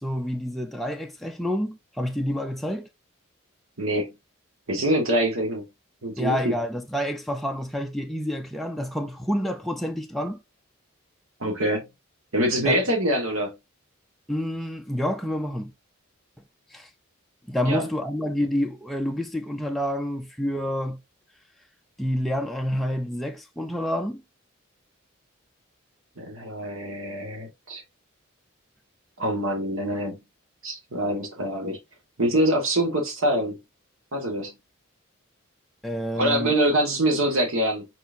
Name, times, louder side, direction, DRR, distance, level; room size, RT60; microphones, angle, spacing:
voice 1, 0.0-2.9 6.2-10.4 12.6-12.8 14.3-15.7 16.7-16.9 17.5-21.0 22.0-24.2 35.8-36.5, equal, ahead, 0.4 m, -28 dB
voice 2, 3.8-4.1 4.7-5.6 6.0-6.5 11.4-11.9 12.3-13.5 17.6-17.9 26.2-27.8 29.2-30.2 30.6-31.8 32.2-33.6 34.1-34.5 36.2-37.9, right 1 dB, 75° right, 1.5 m, -25 dB
4.4 x 4.2 x 2.6 m
head